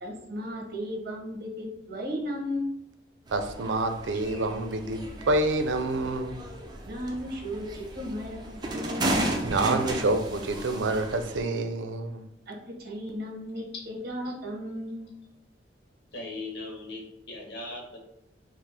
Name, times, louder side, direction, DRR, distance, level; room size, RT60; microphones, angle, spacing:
voice 1, 0.0-2.7 6.8-9.2 12.5-15.1, equal, 55° right, 0 dB, 0.9 m, -35 dB
sound 1, 3.3-11.4, right 1 dB, 25° right, 0.5 m, -34 dB
voice 2, 3.3-6.4 9.4-12.2, right 2 dB, 85° right, 7 dB, 0.5 m, -27 dB
voice 3, 16.1-18.0, left 2 dB, 65° left, 0 dB, 1.0 m, -38 dB
4.6 x 2.0 x 3.3 m, 0.82 s
head